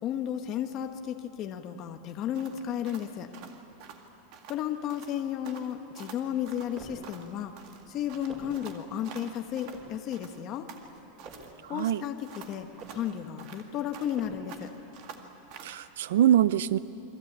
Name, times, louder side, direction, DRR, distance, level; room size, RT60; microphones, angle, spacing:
voice 1, 0.0-3.3 4.5-7.5 7.9-10.7 11.7-14.7, left 10 dB, 30° left, 5 dB, 1.1 m, -33 dB
sound 1, 2.3-4.6 4.9-5.2 5.4-7.3 7.6-9.8 10.1-11.5 11.8-14.2 14.5-15.8, right 7 dB, 40° right, 2.0 m, -48 dB
sound 2, 6.3-7.1 7.8-8.7 9.3-10.0 10.7-11.6 12.3-13.1 13.8-14.6, right 3 dB, 25° right, 4.7 m, -49 dB
voice 2, 11.6-12.0 15.6-16.8, right 11 dB, 80° right, 16 dB, 0.6 m, -24 dB
29.5 x 22.5 x 8.7 m, 2.9 s
supercardioid pair, 180°, 0 cm